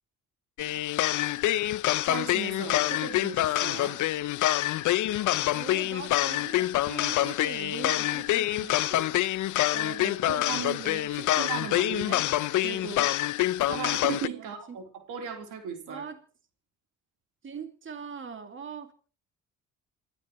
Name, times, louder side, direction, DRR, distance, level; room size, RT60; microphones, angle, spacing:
sound 1, 0.6-14.3, left 15 dB, 80° left, 0.7 m, -26 dB
voice 1, 2.0-4.0 9.7-13.1 13.6-16.0, right 7 dB, 85° right, 4 dB, 3.7 m, -37 dB
voice 2, 5.5-9.2 14.4-14.8 15.9-16.2 17.4-18.9, right 6 dB, 40° right, 7 dB, 2.4 m, -41 dB
28.0 x 13.5 x 3.1 m, 0.40 s
cardioid pair, 90°, 30 cm